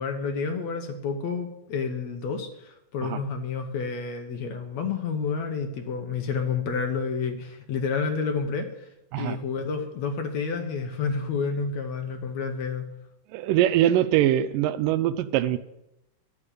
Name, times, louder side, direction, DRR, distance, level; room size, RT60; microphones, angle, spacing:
voice 1, 0.0-8.9 9.2-12.9, left 5 dB, 65° left, 5 dB, 1.9 m, -30 dB
voice 2, 13.3-15.6, right 12 dB, 85° right, 13 dB, 2.3 m, -23 dB
12.0 x 8.8 x 6.7 m, 0.86 s
omnidirectional pair, 3.9 m